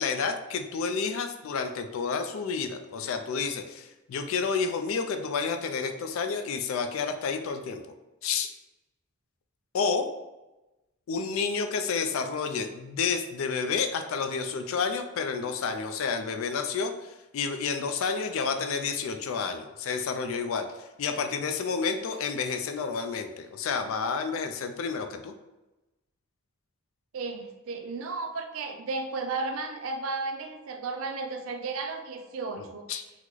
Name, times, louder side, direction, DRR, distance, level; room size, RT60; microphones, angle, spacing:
voice 1, 0.0-7.8 8.2-8.5 9.7-10.1 11.1-25.3 32.9-33.0, left 5 dB, 70° left, 7 dB, 0.3 m, -30 dB
voice 2, 27.1-32.9, right 3 dB, 70° right, 5 dB, 0.4 m, -34 dB
3.6 x 2.1 x 3.0 m, 1.0 s
head